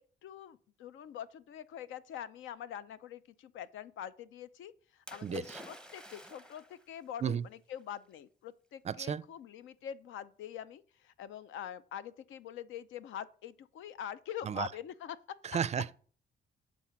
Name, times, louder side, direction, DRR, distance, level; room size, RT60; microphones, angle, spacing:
voice 1, 0.2-15.2, left 10 dB, 80° left, 0.6 m, -44 dB
Splash splatter, 5.1-6.9 7.8-7.9, equal, 5° left, 0.7 m, -50 dB
voice 2, 5.2-5.6 7.2-7.4 8.8-9.2 14.4-14.7 15.4-15.9, right 8 dB, 35° right, 0.4 m, -33 dB
7.7 x 3.7 x 6.2 m
cardioid pair, 90°, 20 cm